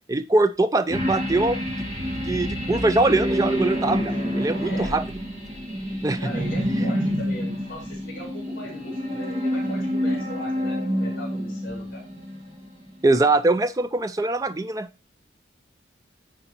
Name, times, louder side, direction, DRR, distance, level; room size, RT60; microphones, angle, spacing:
voice 1, 0.1-1.6 2.2-5.0 6.0-6.3 13.0-14.9, right 2 dB, 20° right, 12 dB, 0.3 m, -22 dB
sound 1, 0.9-12.7 13.0-13.1, equal, 35° right, 1.8 m, -27 dB
voice 2, 4.6-4.9 6.2-12.0, equal, 45° left, -8 dB, 3.7 m, -39 dB
9.7 x 3.9 x 4.3 m, 0.31 s
head